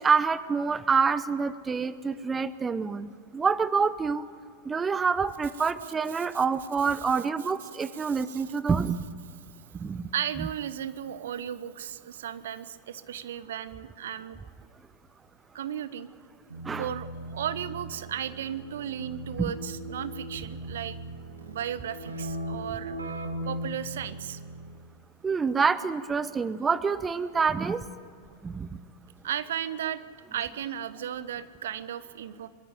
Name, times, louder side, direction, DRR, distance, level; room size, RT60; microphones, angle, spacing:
voice 1, 0.0-4.3 4.6-9.0 9.7-10.1 16.6-16.9 25.2-27.8 28.4-28.8, right 5 dB, 15° right, 15 dB, 0.7 m, -27 dB
voice 2, 7.8-8.4 10.1-14.4 15.5-16.1 16.8-21.0 21.5-23.1 23.4-24.4 29.2-30.0 30.3-32.5, right 10 dB, 60° right, 15 dB, 0.9 m, -35 dB
Keyboard (musical), 16.5-24.9, right 1 dB, 80° right, 1.7 m, -38 dB
23.5 x 13.5 x 10.0 m, 2.1 s
figure-of-eight pair, 90°, 0 cm